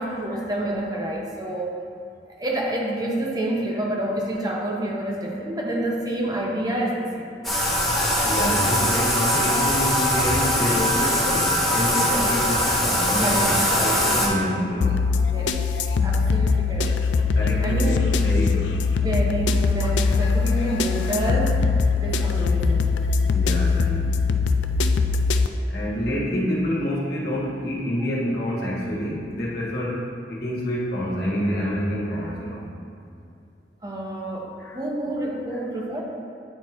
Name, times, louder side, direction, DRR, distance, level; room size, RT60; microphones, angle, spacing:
voice 1, 0.0-1.7 2.4-7.3 13.1-13.5 15.2-15.5 16.0-16.9 17.6-18.0 19.0-22.9 33.8-36.0, right 1 dB, 20° right, -2 dB, 0.8 m, -28 dB
Bathtub (filling or washing), 7.4-14.3, equal, ahead, 1.4 m, -21 dB
voice 2, 8.2-13.4 13.7-14.9 17.3-18.7 23.3-24.0 25.7-30.0 30.3-32.6 34.6-34.8 35.5-35.6, equal, 60° left, -5 dB, 1.4 m, -27 dB
sound 1, 14.8-25.5, left 4 dB, 90° left, 0.4 m, -22 dB
9.4 x 4.4 x 3.1 m, 2.5 s
head